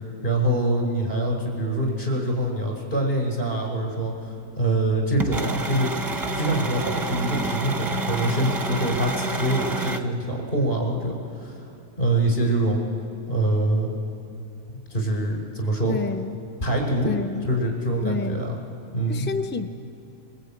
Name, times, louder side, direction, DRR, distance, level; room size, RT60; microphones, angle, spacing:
voice 1, 0.2-5.9 6.3-11.5 12.0-12.8 13.3-13.9 14.7-16.0 16.6-17.1 17.4-18.6 18.9-19.3, right 1 dB, 40° left, 1 dB, 5.2 m, -24 dB
sound 1, 5.2-10.0, right 3 dB, 15° right, 0.8 m, -29 dB
voice 2, 15.9-16.4 17.0-17.5 18.0-18.4 19.1-19.7, left 4 dB, 15° left, 7 dB, 0.3 m, -29 dB
23.0 x 22.0 x 8.8 m, 2.5 s
omnidirectional pair, 1.6 m